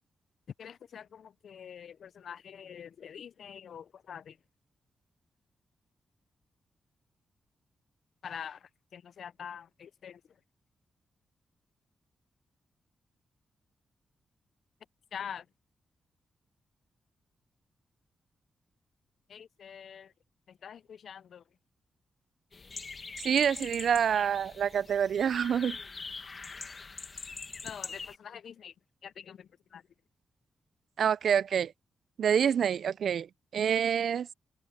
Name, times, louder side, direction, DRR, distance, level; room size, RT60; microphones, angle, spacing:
voice 1, 0.6-4.3 8.2-8.6 8.9-10.2 15.1-15.4 19.3-20.1 20.6-21.4 27.6-28.7 29.0-29.8, left 8 dB, 60° left, 0.4 m, -45 dB
sound 1, 22.5-28.2, left 4 dB, 30° left, 1.1 m, -43 dB
voice 2, 23.2-25.8 31.0-31.7 32.2-33.3 33.5-34.3, right 8 dB, 65° right, 0.3 m, -27 dB
wide cardioid pair, 160°, 0 cm